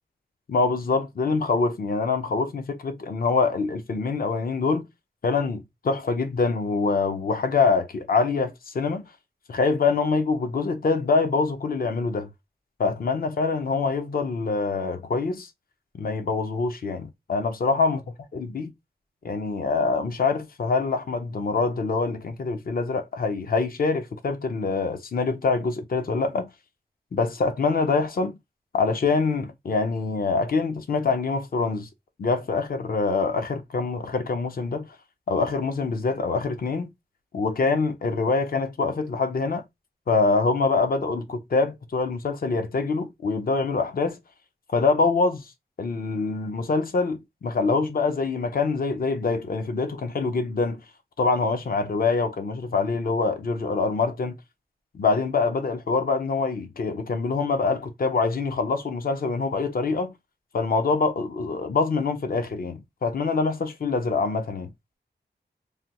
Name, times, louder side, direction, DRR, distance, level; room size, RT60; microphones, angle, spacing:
voice 1, 0.5-4.9 5.2-9.0 9.5-12.3 12.8-15.5 15.9-18.0 18.3-18.7 19.2-26.5 27.1-28.4 28.7-31.9 32.2-34.9 35.3-36.9 37.3-39.6 40.1-44.2 44.7-45.5 45.8-50.8 51.2-54.3 54.9-60.1 60.5-64.7, left 4 dB, 55° left, 0.6 m, -25 dB
3.2 x 2.2 x 2.8 m
wide cardioid pair, 120°, 18 cm